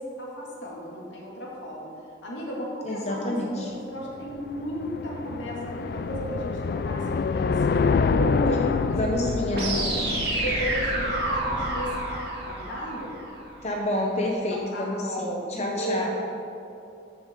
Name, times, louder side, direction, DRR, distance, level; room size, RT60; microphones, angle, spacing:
voice 1, 0.0-1.9 2.2-7.8 8.0-9.1 9.7-10.0 10.3-13.2 14.5-16.1, equal, 90° left, -4 dB, 2.2 m, -35 dB
voice 2, 2.9-3.7 9.0-10.0 13.6-16.1, left 1 dB, 35° left, 0 dB, 0.8 m, -28 dB
sound 1, 4.2-11.5, left 4 dB, 55° left, 0.3 m, -27 dB
sound 2, 9.5-13.5, right 1 dB, 60° right, 2.3 m, -29 dB
14.0 x 7.1 x 3.7 m, 2.7 s
head